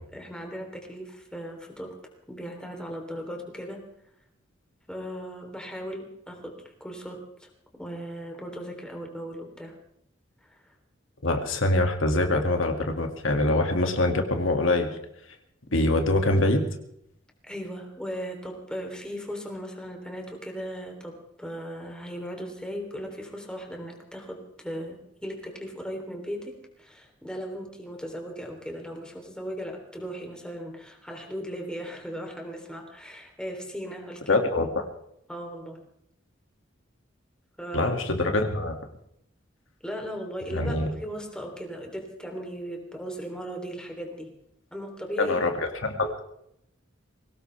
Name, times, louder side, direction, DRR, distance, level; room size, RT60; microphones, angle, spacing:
voice 1, 0.1-2.0 2.3-3.8 4.9-9.8 10.4-10.7 17.4-34.4 35.3-35.8 37.6-37.9 39.8-44.3 44.7-45.4, equal, 5° left, 2 dB, 3.4 m, -37 dB
voice 2, 11.2-14.9 15.7-16.7 34.3-34.8 37.7-38.8 40.5-40.9 45.2-46.2, left 2 dB, 80° left, 4 dB, 2.3 m, -24 dB
22.5 x 18.0 x 3.4 m, 0.75 s
head